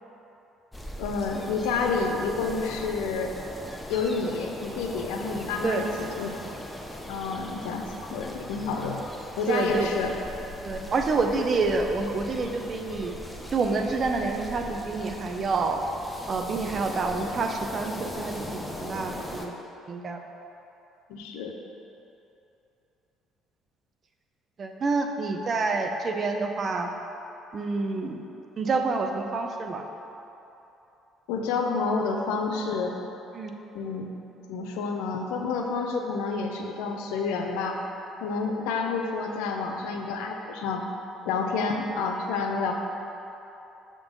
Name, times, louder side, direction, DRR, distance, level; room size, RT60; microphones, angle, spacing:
sound 1, 0.7-19.5, left 1 dB, 10° left, 0.7 m, -39 dB
voice 1, 1.0-3.3 3.9-6.3 7.1-7.8 8.1-9.0 9.4-10.1 10.8-10.9 21.1-21.5 31.3-32.9 33.7-34.1 34.5-37.8 38.2-40.8 41.3-42.7, left 4 dB, 90° left, 2 dB, 0.6 m, -29 dB
voice 2, 9.5-9.9 10.6-13.1 13.5-15.8 16.3-19.6 19.9-20.2 24.6-26.9 27.5-28.2 28.6-29.8 33.3-33.6, right 3 dB, 45° right, 4 dB, 0.6 m, -28 dB
6.9 x 3.8 x 5.3 m, 3.0 s
supercardioid pair, 85°, 0 cm